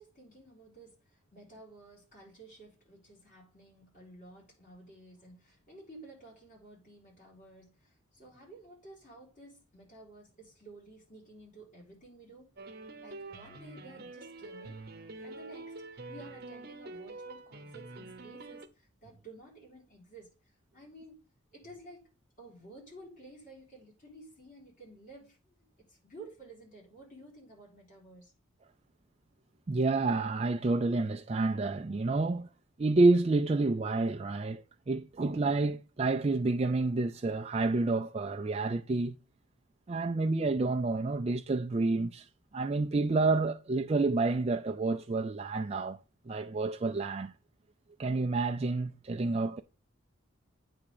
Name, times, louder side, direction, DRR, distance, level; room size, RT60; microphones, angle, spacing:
voice 1, 0.0-12.5 13.0-14.8 15.2-20.3 20.7-21.2 21.5-22.1 22.4-28.3, right 2 dB, 40° left, 4.1 m, -53 dB
sound 1, 12.6-18.7, right 2 dB, 45° right, 0.8 m, -46 dB
voice 2, 29.7-32.5 32.8-39.2 39.9-42.3 42.5-46.0 46.3-47.3 48.0-49.6, right 3 dB, 30° right, 0.4 m, -29 dB
8.5 x 3.6 x 6.6 m
head